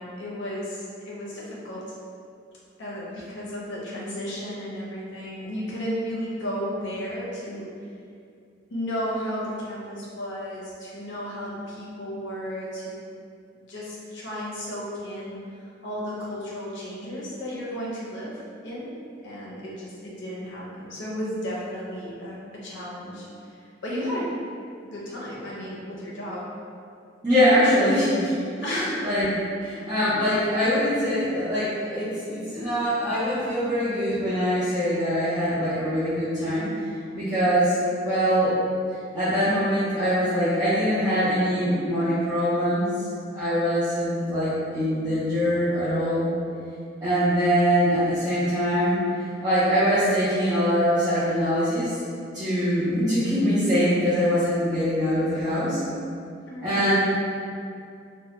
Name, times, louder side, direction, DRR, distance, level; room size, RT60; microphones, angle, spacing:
voice 1, 0.0-2.0 2.8-7.7 8.7-13.0 13.5-18.9 19.2-24.3 24.8-26.5 28.6-29.1 29.6-29.9 38.0-38.3 56.5-56.9, equal, 65° left, -5 dB, 0.6 m, -34 dB
voice 2, 27.2-28.3 28.6-29.3 29.6-36.7 37.1-37.7 38.0-38.6 39.1-42.9 43.3-46.3 47.0-51.9 52.3-55.8 56.6-56.9, equal, 20° right, -15 dB, 0.5 m, -23 dB
2.1 x 2.1 x 2.8 m, 2.4 s
head